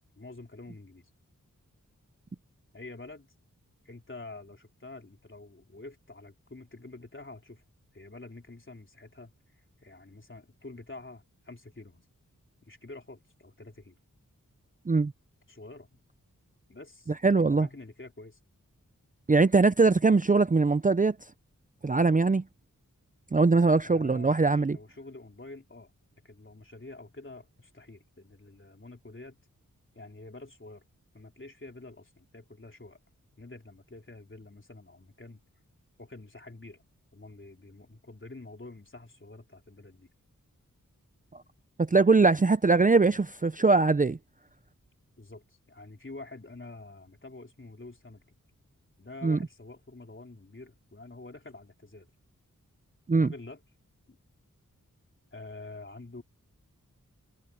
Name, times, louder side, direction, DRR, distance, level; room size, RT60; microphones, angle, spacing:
voice 1, 0.2-1.1 2.7-3.3 3.8-7.6 7.9-12.1 12.7-14.0 15.5-16.0 16.7-18.4 23.8-25.9 26.2-29.4 29.9-30.8 31.1-33.0 33.4-35.4 36.0-36.8 37.1-40.1 45.2-48.4 49.0-52.1 53.1-53.6 54.1-54.2 55.3-56.2, left 2 dB, 35° left, 3.9 m, -47 dB
voice 2, 17.2-17.7 19.3-21.2 21.8-22.4 23.3-24.8 41.8-44.2 49.2-49.4 53.1-53.3, right 3 dB, 25° right, 0.6 m, -22 dB
wide cardioid pair, 60°, 32 cm